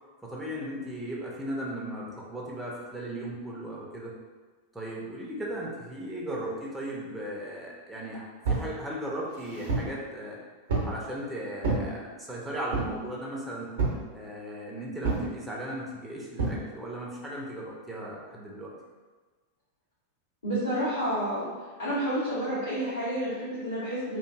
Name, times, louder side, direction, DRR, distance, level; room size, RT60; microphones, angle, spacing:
voice 1, 0.2-4.1 4.7-10.4 10.8-13.7 14.1-18.7, right 1 dB, 5° right, -5 dB, 0.5 m, -37 dB
sound 1, 8.4-8.7 9.3-10.0 10.7-11.0 11.6-11.9 12.7-13.0 13.8-14.1 15.0-15.3 16.4-16.6, right 3 dB, 60° right, 0.7 m, -28 dB
voice 2, 20.4-21.5 21.8-24.2, right 1 dB, 75° left, -12 dB, 0.8 m, -29 dB
2.8 x 2.5 x 2.2 m, 1.4 s
figure-of-eight pair, 90°, 0 cm